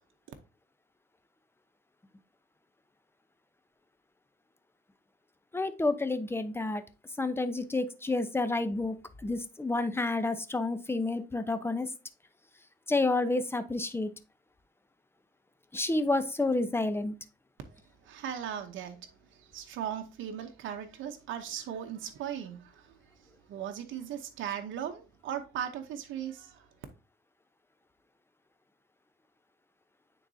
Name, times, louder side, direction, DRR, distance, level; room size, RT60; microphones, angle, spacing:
voice 1, 5.5-6.8 7.2-9.0 9.2-11.9 12.9-14.1 15.7-17.1, left 2 dB, 10° left, 0.8 m, -29 dB
voice 2, 18.0-19.0 19.3-22.9 23.5-26.7, right 9 dB, 80° right, 0.8 m, -38 dB
9.1 x 3.9 x 2.7 m
cardioid pair, 90°, 20 cm